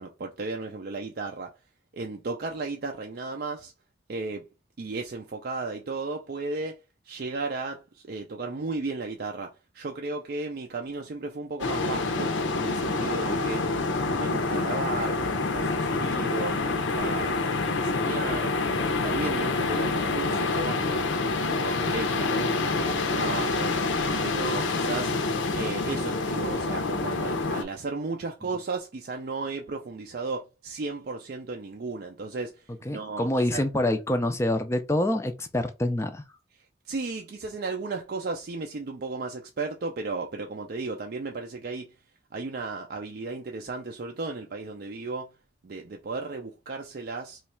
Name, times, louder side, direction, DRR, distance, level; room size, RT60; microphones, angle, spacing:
voice 1, 0.0-1.5 1.9-3.7 4.1-4.5 4.8-6.8 7.1-13.7 14.1-17.4 17.7-18.5 18.9-23.8 24.2-25.1 25.5-32.6 32.9-33.6 36.9-41.9 42.3-45.3 45.6-47.4, right 3 dB, 50° right, 0.4 m, -35 dB
sound 1, 11.6-27.6, left 3 dB, 85° left, 0.6 m, -27 dB
voice 2, 32.8-36.2, left 1 dB, 15° left, 0.4 m, -26 dB
3.1 x 2.3 x 4.2 m
head